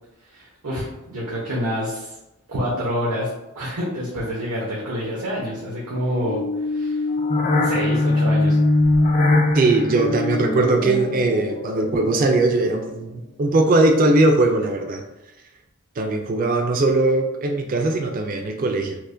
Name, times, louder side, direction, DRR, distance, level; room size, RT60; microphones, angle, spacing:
voice 1, 0.3-2.1 2.5-7.0 7.6-8.6, equal, 85° right, -6 dB, 0.8 m, -27 dB
sound 1, 6.2-12.6, left 2 dB, 35° left, 0.4 m, -21 dB
voice 2, 9.5-15.0 16.0-19.0, right 2 dB, 40° right, 4 dB, 0.3 m, -20 dB
4.5 x 2.1 x 2.5 m, 0.92 s
head